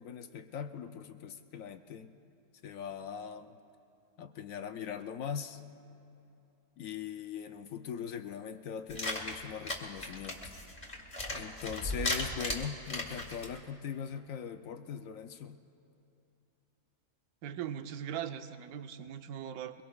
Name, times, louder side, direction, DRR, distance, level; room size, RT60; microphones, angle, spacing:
voice 1, 0.0-2.1 2.6-3.6 4.2-5.6 6.8-10.5 11.3-15.6, left 7 dB, 65° left, 8 dB, 0.8 m, -41 dB
sound 1, 8.9-13.6, left 1 dB, 25° left, 1.8 m, -37 dB
voice 2, 17.4-19.8, right 9 dB, 70° right, 9 dB, 1.1 m, -40 dB
23.5 x 22.5 x 2.3 m, 2.8 s
omnidirectional pair, 1.8 m